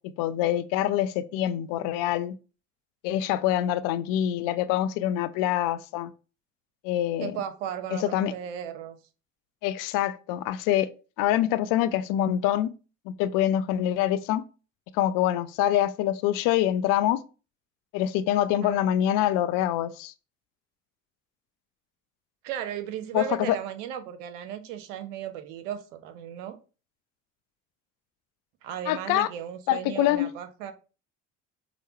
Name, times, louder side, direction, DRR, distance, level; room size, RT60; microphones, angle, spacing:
voice 1, 0.2-2.4 3.0-6.1 6.8-7.3 7.9-8.3 9.6-10.9 11.2-12.7 13.1-14.4 14.9-17.2 17.9-20.1 23.1-23.6 28.9-29.3 29.7-30.3, left 12 dB, 60° left, 0.5 m, -25 dB
voice 2, 7.2-9.0 18.6-18.8 22.4-26.6 28.6-30.7, right 9 dB, 75° right, 0.6 m, -35 dB
4.8 x 2.1 x 2.9 m
hypercardioid pair, 60°, 37 cm